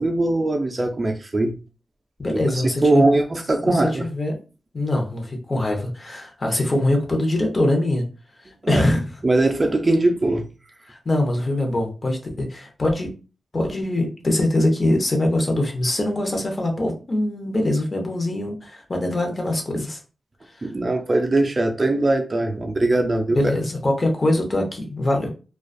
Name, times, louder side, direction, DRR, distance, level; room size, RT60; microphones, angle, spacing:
voice 1, 0.0-1.6 2.3-4.1 8.6-8.8 9.2-10.5 20.6-23.4, right 2 dB, 35° right, 0.3 m, -21 dB
voice 2, 2.2-3.0 3.6-4.4 4.7-8.0 8.7-9.1 10.9-13.1 13.5-20.0 20.5-20.7 23.3-25.3, left 1 dB, 35° left, 0.7 m, -23 dB
2.4 x 2.2 x 2.5 m
wide cardioid pair, 105°, 0 cm